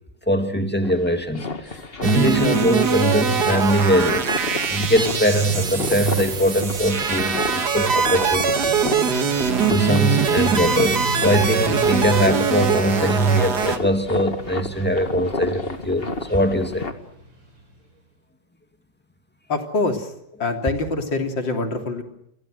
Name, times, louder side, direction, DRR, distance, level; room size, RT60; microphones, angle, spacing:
voice 1, 0.3-1.7 2.0-4.3 4.7-8.9 9.7-16.9, equal, 5° left, 2.2 m, -21 dB
sound 1, 0.8-16.9, left 3 dB, 30° left, 2.1 m, -32 dB
sound 2, 2.0-13.8, right 6 dB, 60° right, 2.3 m, -22 dB
Motorcycle / Traffic noise roadway noise, 3.8-17.9, right 2 dB, 75° right, 5.5 m, -36 dB
voice 2, 19.5-20.1 20.4-22.0, left 3 dB, 90° left, 3.9 m, -24 dB
29.5 x 23.5 x 6.5 m
omnidirectional pair, 2.0 m